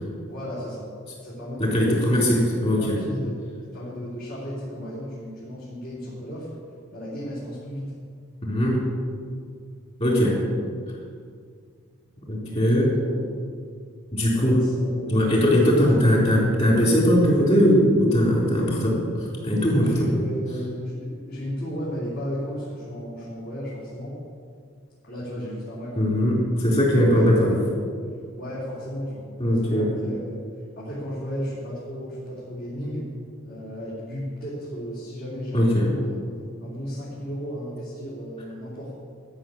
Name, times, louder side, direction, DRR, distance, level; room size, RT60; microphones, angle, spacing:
voice 1, 0.3-0.8 1.2-2.5 2.8-3.3 3.7-6.5 6.9-7.9 12.4-13.2 14.3-15.5 19.8-24.2 25.0-27.6 28.4-29.3 29.6-30.4 30.8-33.1 33.4-36.3 36.6-38.9, equal, 50° left, -9 dB, 3.8 m, -34 dB
voice 2, 1.6-3.0 8.4-8.8 10.0-10.4 12.3-12.9 14.1-14.6 15.1-20.1 26.0-27.5 29.4-29.9 35.5-35.9, equal, 30° left, -3 dB, 4.3 m, -20 dB
13.5 x 6.8 x 9.0 m, 2.2 s
head